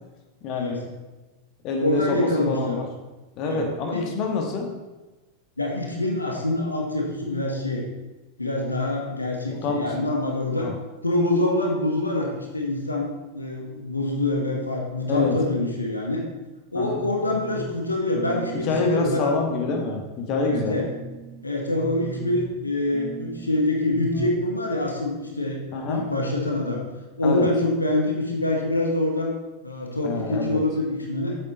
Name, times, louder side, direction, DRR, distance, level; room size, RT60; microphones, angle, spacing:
voice 1, 0.4-0.8 1.6-2.9 3.4-4.8 9.5-9.8 10.6-10.7 15.1-15.4 16.7-17.0 18.6-20.8 25.7-26.1 27.2-27.5 30.0-30.6, left 3 dB, 40° left, 2 dB, 1.4 m, -26 dB
voice 2, 1.8-2.8 3.4-3.6 3.9-4.1 5.6-7.8 8.4-10.7 11.0-16.2 16.7-19.3 20.4-20.9 21.4-26.8 27.2-29.3 29.6-31.4, left 1 dB, 80° left, 0 dB, 1.4 m, -25 dB
sound 1, 17.0-17.8 18.1-19.0 19.3-19.8 20.3-21.4 21.8-22.6 22.9-23.6 24.1-24.5 24.7-24.8, right 5 dB, 60° right, 2.3 m, -38 dB
8.3 x 7.5 x 4.1 m, 1.1 s
figure-of-eight pair, 90°, 0 cm